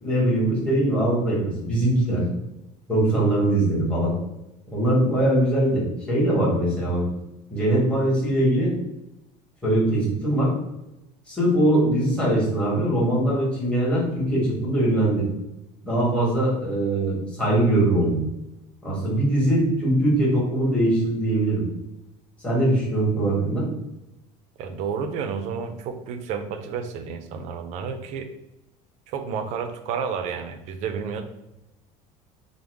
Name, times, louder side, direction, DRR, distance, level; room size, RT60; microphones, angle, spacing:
voice 1, 0.0-2.2 2.9-4.1 4.7-7.0 7.5-8.7 9.6-10.5 11.3-15.3 15.8-18.2 18.8-21.6 22.4-23.7, right 1 dB, 5° left, -7 dB, 1.2 m, -22 dB
voice 2, 24.6-28.3 29.1-31.2, right 6 dB, 50° right, 8 dB, 0.4 m, -31 dB
3.4 x 2.0 x 3.3 m, 0.91 s
cardioid pair, 145°, 15 cm